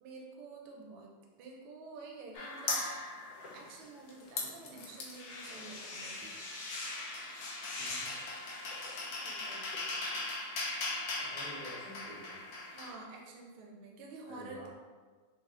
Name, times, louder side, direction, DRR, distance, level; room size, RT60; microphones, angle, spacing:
voice 1, 0.0-1.1 1.4-2.8 3.5-6.2 9.2-9.7 12.7-14.7, right 3 dB, 90° right, 0 dB, 1.5 m, -49 dB
sound 1, 2.3-3.8 4.1-12.9, left 2 dB, 85° left, 0.8 m, -39 dB
voice 2, 7.8-8.1 11.2-12.4 14.3-14.7, right 1 dB, 45° right, -11 dB, 0.4 m, -49 dB
3.9 x 2.4 x 3.3 m, 1.4 s
omnidirectional pair, 2.4 m